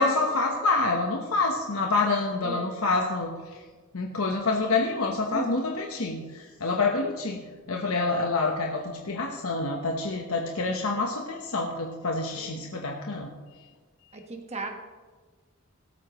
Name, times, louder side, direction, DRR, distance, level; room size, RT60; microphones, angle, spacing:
voice 1, 0.0-3.3 3.9-13.3, left 3 dB, 85° left, 1 dB, 1.1 m, -27 dB
voice 2, 14.1-14.7, right 2 dB, 30° right, 3 dB, 1.5 m, -36 dB
17.5 x 13.0 x 3.1 m, 1.4 s
head